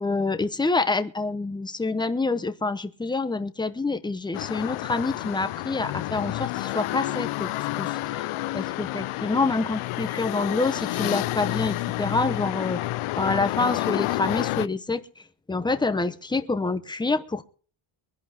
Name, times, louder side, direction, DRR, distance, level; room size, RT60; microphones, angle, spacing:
voice 1, 0.0-7.5 7.8-8.3 8.5-12.8 13.2-15.0 15.5-17.4, left 3 dB, 10° left, 10 dB, 0.8 m, -27 dB
sound 1, 4.3-14.7, left 17 dB, 80° left, 0.7 m, -29 dB
23.5 x 11.0 x 3.5 m, 0.40 s
cardioid pair, 165°, 49 cm